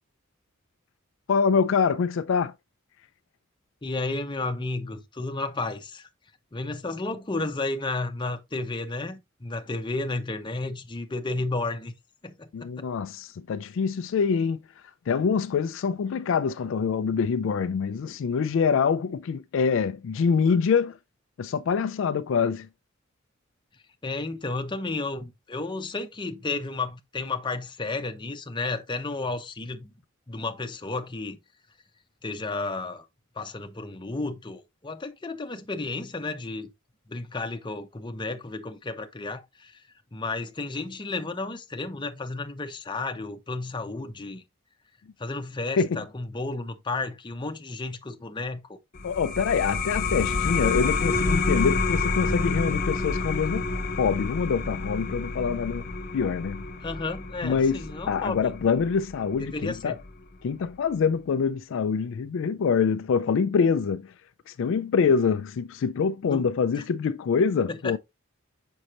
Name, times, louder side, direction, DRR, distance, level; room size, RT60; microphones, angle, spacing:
voice 1, 1.3-2.5 12.5-14.6 15.1-21.0 21.4-22.7 45.8-46.0 49.0-53.7 54.0-55.8 56.1-56.6 57.4-60.0 60.4-64.1 64.5-68.0, left 6 dB, 65° left, 0.3 m, -25 dB
voice 2, 3.8-6.1 6.5-11.9 12.2-12.8 24.0-29.9 30.3-31.4 32.2-33.0 33.4-36.7 37.1-39.8 40.1-44.4 45.2-48.8 56.8-58.5 59.4-60.0 66.3-66.5 67.7-68.0, left 3 dB, 20° left, 0.7 m, -32 dB
sound 1, 48.9-60.1, left 3 dB, 45° left, 1.0 m, -29 dB
6.3 x 5.4 x 2.9 m
head